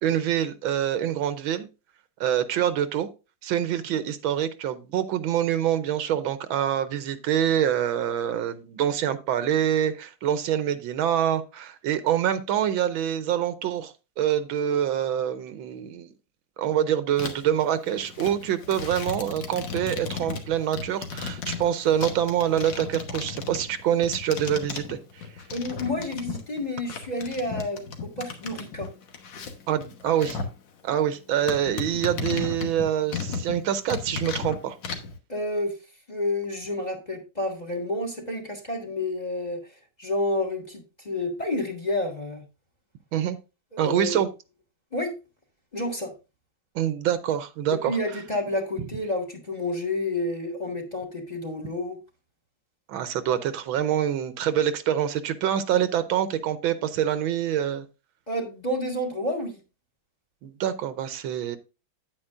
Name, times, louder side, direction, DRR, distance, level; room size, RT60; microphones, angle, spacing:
voice 1, 0.0-1.7 2.2-3.1 3.4-16.1 16.6-25.2 29.7-30.4 30.8-34.8 43.1-43.4 43.8-44.3 46.7-48.0 52.9-57.8 60.4-61.6, right 10 dB, 80° right, 1.5 m, -25 dB
sound 1, 17.2-17.6 17.9-26.6 26.9-30.5 30.9-31.0 31.5-33.6 33.9-35.1, left 5 dB, 65° left, 1.8 m, -35 dB
voice 2, 25.5-28.9 35.3-35.7 36.1-42.4 43.7-44.2 44.9-45.1 45.7-46.1 47.8-52.0 58.3-59.6, left 1 dB, 20° left, 1.6 m, -30 dB
9.3 x 8.8 x 2.5 m
omnidirectional pair, 2.2 m